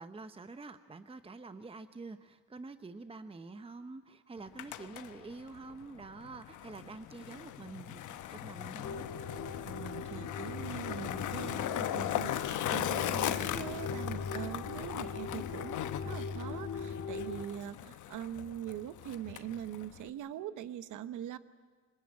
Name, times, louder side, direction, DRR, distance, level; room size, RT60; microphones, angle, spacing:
voice 1, 0.0-9.0, right 3 dB, 20° right, 10 dB, 0.9 m, -47 dB
Skateboard, 4.4-20.1, left 12 dB, 80° left, 1.0 m, -39 dB
sound 1, 8.8-17.4, left 5 dB, 60° left, 2.4 m, -41 dB
voice 2, 9.6-21.4, right 11 dB, 80° right, 13 dB, 1.1 m, -42 dB
25.5 x 20.0 x 8.5 m, 1.5 s
cardioid pair, 90°, 30 cm